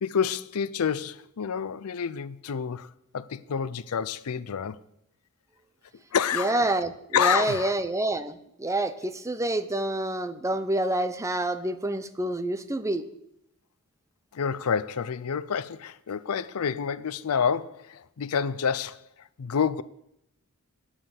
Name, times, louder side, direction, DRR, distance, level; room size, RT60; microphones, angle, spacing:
voice 1, 0.0-4.8 6.1-6.7 7.1-7.7 14.3-19.0 19.4-19.8, left 7 dB, 85° left, 0.5 m, -28 dB
voice 2, 6.3-13.0, right 1 dB, 15° right, 0.7 m, -27 dB
10.0 x 7.7 x 7.2 m
head